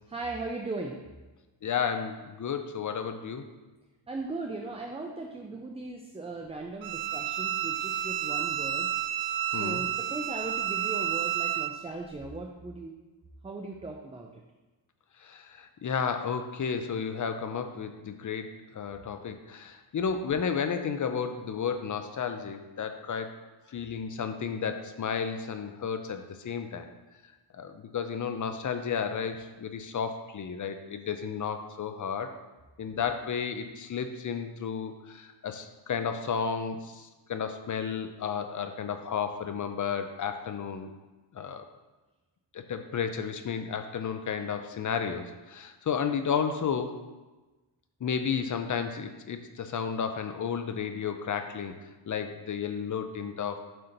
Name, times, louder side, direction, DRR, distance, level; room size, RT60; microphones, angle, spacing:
voice 1, 0.1-1.0 4.1-8.9 9.4-12.9 13.4-14.4, right 2 dB, 15° right, 1 dB, 0.4 m, -38 dB
voice 2, 1.6-3.5 9.5-9.8 15.2-23.3 23.7-26.9 27.5-32.3 32.8-40.9 41.3-41.6 42.5-47.0 48.0-51.7 52.1-53.6, left 6 dB, 40° left, 7 dB, 0.5 m, -32 dB
Bowed string instrument, 6.8-11.7, right 11 dB, 80° right, 0.6 m, -30 dB
7.7 x 2.9 x 5.1 m, 1.2 s
wide cardioid pair, 130°, 46 cm